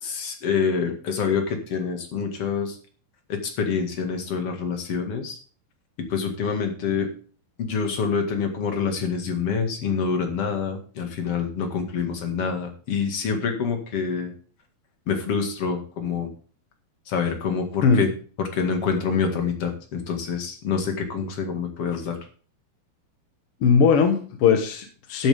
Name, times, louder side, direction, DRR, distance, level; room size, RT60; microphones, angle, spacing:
voice 1, 0.0-2.8 3.3-5.4 6.1-7.1 7.6-14.3 15.1-16.3 17.1-18.1 18.4-22.2, left 5 dB, 45° left, 4 dB, 2.4 m, -26 dB
voice 2, 23.6-25.3, left 6 dB, 60° left, 5 dB, 1.5 m, -19 dB
13.5 x 8.9 x 3.5 m, 0.39 s
omnidirectional pair, 4.4 m